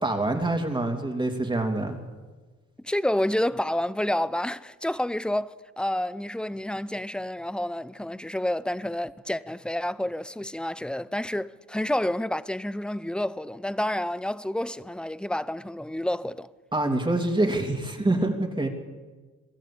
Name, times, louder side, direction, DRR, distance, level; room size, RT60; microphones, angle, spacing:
voice 1, 0.0-2.0 16.7-18.7, right 2 dB, 15° right, 3.0 m, -25 dB
voice 2, 2.8-16.5, left 1 dB, 5° left, 0.7 m, -29 dB
23.0 x 13.0 x 8.7 m
cardioid pair, 90°, 30 cm